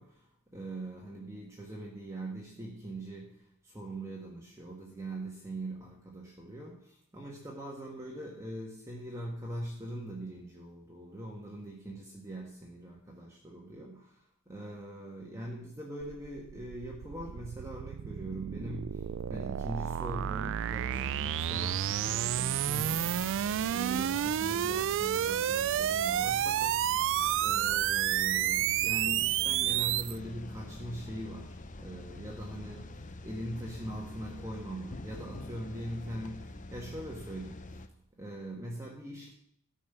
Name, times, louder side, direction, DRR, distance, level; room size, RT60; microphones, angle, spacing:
voice 1, 0.0-33.0 33.2-37.8 38.1-39.3, right 1 dB, 15° right, -2 dB, 1.5 m, -42 dB
sound 1, 16.0-30.2, right 11 dB, 60° right, 0.3 m, -30 dB
sound 2, 20.9-37.9, left 2 dB, 35° left, 0.7 m, -46 dB
13.5 x 5.5 x 6.8 m, 0.65 s
head